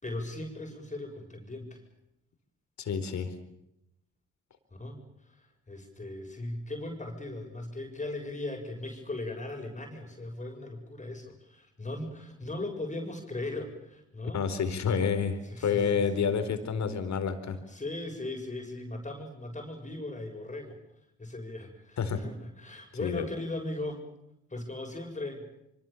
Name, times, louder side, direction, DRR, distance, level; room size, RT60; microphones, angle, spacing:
voice 1, 0.0-1.8 4.7-14.4 15.4-16.0 17.7-20.8 21.2-24.0 24.5-25.5, left 2 dB, 20° left, 2 dB, 7.1 m, -38 dB
voice 2, 2.8-3.3 14.3-17.6 22.0-22.2 23.0-23.2, left 6 dB, 60° left, 9 dB, 4.3 m, -29 dB
26.5 x 24.5 x 7.2 m, 0.84 s
hypercardioid pair, 55°, 32 cm